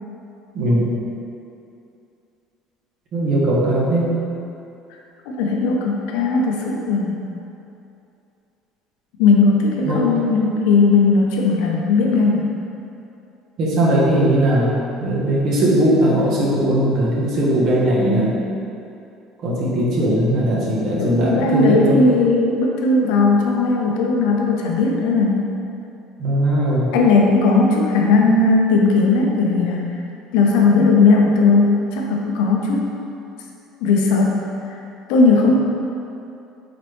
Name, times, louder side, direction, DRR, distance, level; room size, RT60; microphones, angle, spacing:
voice 1, 0.5-0.9 3.1-4.1 9.8-10.1 13.6-14.7 15.0-18.3 19.4-22.0 26.2-26.9, right 1 dB, 50° right, -5 dB, 0.9 m, -18 dB
voice 2, 5.3-7.2 9.2-12.5 21.0-25.4 26.9-29.9 30.3-32.9 33.8-34.8 35.1-35.5, left 3 dB, 85° left, 0 dB, 0.4 m, -17 dB
3.9 x 3.1 x 3.1 m, 2.7 s
cardioid pair, 140°, 0 cm